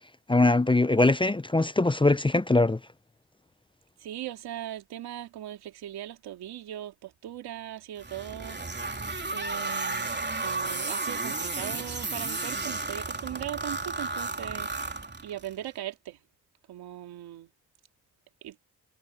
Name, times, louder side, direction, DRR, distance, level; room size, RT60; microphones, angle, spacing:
voice 1, 0.3-2.8, left 2 dB, 15° left, 0.7 m, -22 dB
voice 2, 4.0-16.2 16.7-17.5 18.4-18.6, right 12 dB, 90° right, 2.5 m, -39 dB
sound 1, 8.0-15.5, right 3 dB, 25° right, 3.5 m, -33 dB
supercardioid pair, 50°, 38 cm